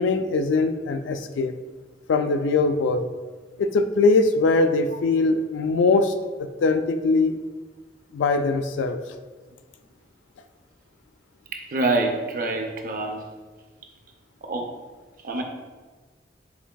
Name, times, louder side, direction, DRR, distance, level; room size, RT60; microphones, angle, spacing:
voice 1, 0.0-1.5 2.1-3.1 3.6-6.1 6.4-7.4 8.1-9.0, left 3 dB, 85° left, 8 dB, 0.3 m, -21 dB
voice 2, 11.5-13.2 14.4-14.7 15.2-15.4, right 2 dB, 50° right, 3 dB, 0.4 m, -26 dB
5.9 x 3.9 x 2.2 m, 1.3 s
head